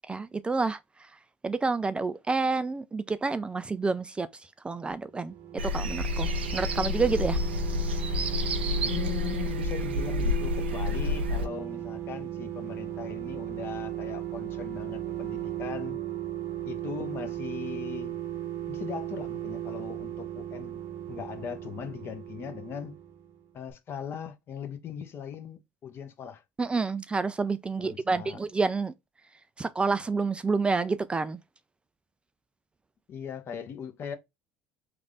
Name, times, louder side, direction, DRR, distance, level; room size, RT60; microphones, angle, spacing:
voice 1, 0.1-1.1 1.4-5.4 5.6-7.4 26.6-28.9 29.6-31.4, right 4 dB, 20° right, 0.3 m, -29 dB
sound 1, 5.1-23.4 23.7-23.8, right 12 dB, 50° right, 0.8 m, -36 dB
sound 2, 5.6-11.5, left 2 dB, 90° right, 0.4 m, -29 dB
voice 2, 8.8-16.0 16.6-18.1 18.7-20.8 21.1-23.0 23.5-26.4 27.8-28.4 33.1-34.2, left 8 dB, 45° left, 0.8 m, -39 dB
3.2 x 2.5 x 3.8 m
hypercardioid pair, 65°, 6 cm